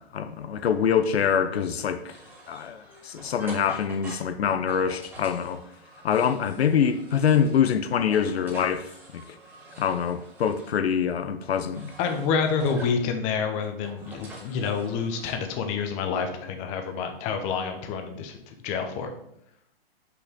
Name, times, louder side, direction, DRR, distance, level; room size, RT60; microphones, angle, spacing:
voice 1, 0.0-2.2 2.5-5.6 6.0-9.2 9.8-11.9, left 7 dB, 85° left, 0.7 m, -25 dB
sound 1, 1.6-7.7 8.0-10.8 11.4-13.1 13.6-15.3, right 2 dB, 5° right, 1.7 m, -46 dB
voice 2, 12.0-18.4 18.6-19.1, left 6 dB, 25° left, 0.8 m, -28 dB
6.2 x 5.6 x 3.6 m
hypercardioid pair, 145°, 30 cm